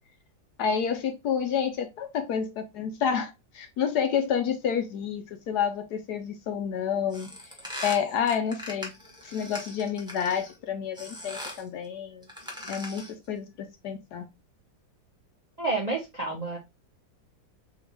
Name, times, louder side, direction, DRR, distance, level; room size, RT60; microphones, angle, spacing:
voice 1, 0.6-7.3 7.8-8.9 9.2-12.3 12.7-14.2, left 7 dB, 70° left, 1.1 m, -29 dB
sound 1, 7.1-10.5 11.0-11.7 12.2-13.2, left 1 dB, 5° right, 1.0 m, -40 dB
voice 2, 15.6-16.6, right 3 dB, 40° right, 0.6 m, -29 dB
3.6 x 3.5 x 3.4 m
omnidirectional pair, 2.0 m